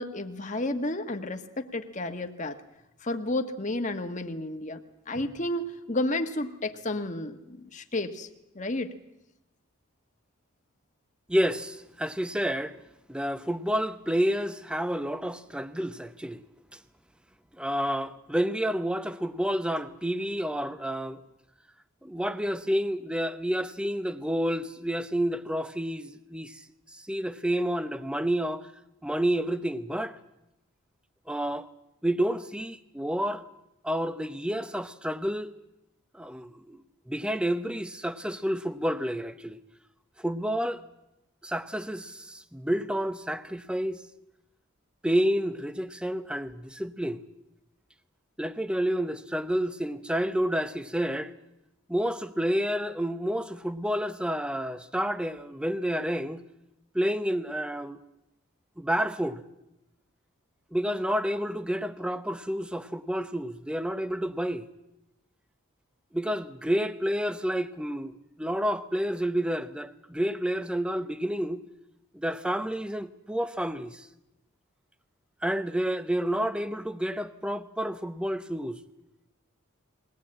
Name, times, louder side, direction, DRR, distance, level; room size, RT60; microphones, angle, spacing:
voice 1, 0.0-2.6 3.0-4.8 5.1-8.3 8.5-8.9, left 1 dB, 35° left, 1.4 m, -31 dB
voice 2, 11.3-12.8 13.1-16.4 16.7-16.8 17.6-21.2 22.0-26.6 26.9-28.7 29.0-30.2 31.3-31.7 32.0-33.4 33.8-35.5 36.1-39.6 40.2-40.8 41.4-44.0 45.0-47.2 48.4-51.3 51.9-56.4 56.9-58.0 58.8-59.4 60.7-64.7 66.1-71.6 72.1-74.1 75.4-78.8, equal, 5° right, 0.8 m, -29 dB
21.5 x 18.5 x 8.7 m
head